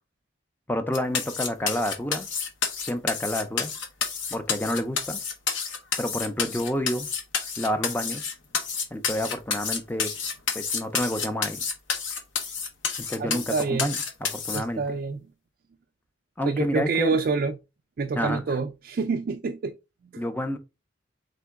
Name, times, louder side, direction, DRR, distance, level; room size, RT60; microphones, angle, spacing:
voice 1, 0.7-2.3 2.9-3.7 4.3-5.2 6.0-7.1 7.6-8.2 8.9-10.1 10.5-11.6 13.1-14.8 16.4-17.2 18.2-18.6 20.2-20.6, left 1 dB, 10° left, 0.5 m, -29 dB
sound 1, 0.9-14.6, left 6 dB, 90° left, 1.0 m, -29 dB
voice 2, 13.2-13.9 14.5-15.2 16.4-17.6 18.0-19.7 20.1-20.2, right 4 dB, 50° right, 0.3 m, -27 dB
3.8 x 3.5 x 3.5 m
head